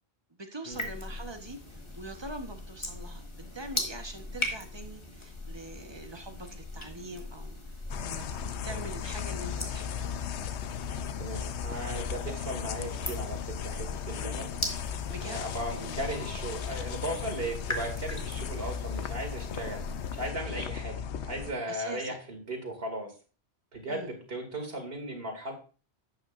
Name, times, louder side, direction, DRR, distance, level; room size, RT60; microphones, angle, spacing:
voice 1, 0.4-3.2 3.5-7.6 8.0-10.1 10.4-10.5 15.1-15.4 15.8-16.0 21.7-22.2 23.9-24.1, right 1 dB, 25° right, 5 dB, 1.1 m, -43 dB
sound 1, 0.7-20.3, left 2 dB, 25° left, 1.5 m, -40 dB
sound 2, 7.9-21.5, left 8 dB, 85° left, 0.9 m, -36 dB
voice 2, 11.2-14.5 15.2-19.8 20.1-23.1 23.7-25.5, right 1 dB, 60° right, 3 dB, 2.4 m, -37 dB
11.5 x 8.3 x 2.5 m, 0.36 s
omnidirectional pair, 1.1 m